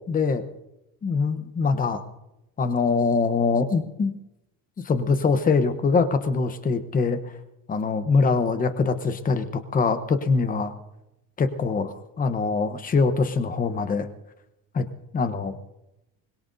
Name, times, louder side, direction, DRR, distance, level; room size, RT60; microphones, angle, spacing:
voice 1, 0.1-0.4 1.0-2.0 2.6-4.1 4.8-7.2 7.7-10.7 11.4-14.1 14.7-14.8 15.1-15.5, left 4 dB, 20° left, 9 dB, 0.9 m, -23 dB
24.5 x 21.5 x 2.7 m, 0.92 s
cardioid pair, 170°, 38 cm